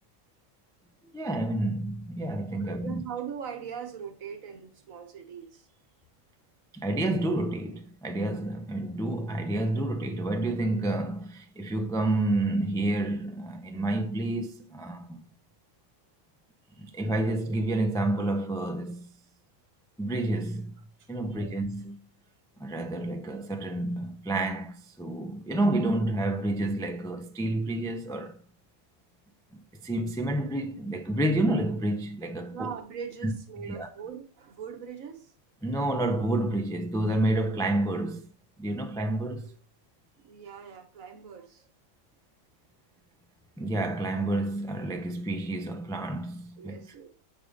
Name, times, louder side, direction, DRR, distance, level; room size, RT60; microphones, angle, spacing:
voice 1, 1.1-3.0 6.7-15.2 16.8-19.1 20.0-20.7 21.1-22.0 22.6-28.4 29.8-32.7 33.2-33.3 33.7-33.9 35.6-38.3 38.6-39.5 43.6-46.9, right 1 dB, 5° left, 0.3 m, -29 dB
voice 2, 2.6-5.7 16.7-16.9 21.0-21.5 32.5-35.3 40.2-41.7 46.6-47.1, right 7 dB, 75° right, 1.5 m, -41 dB
6.7 x 5.1 x 5.1 m
omnidirectional pair, 1.4 m